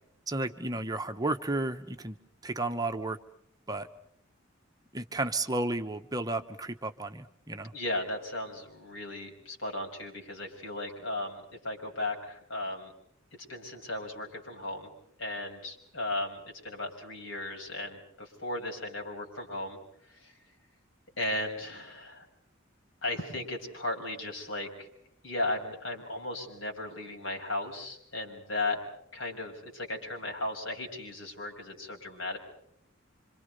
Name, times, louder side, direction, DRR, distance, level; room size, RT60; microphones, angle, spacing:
voice 1, 0.3-2.2 2.4-3.2 3.7-3.9 4.9-7.7, right 2 dB, 20° right, 7 dB, 1.1 m, -32 dB
voice 2, 7.7-12.9 13.5-14.9 15.2-19.8 20.1-20.3 21.2-22.3 23.0-24.9 25.2-28.8 29.1-32.4, left 2 dB, 75° left, 2 dB, 6.1 m, -36 dB
27.5 x 26.0 x 5.3 m, 0.70 s
head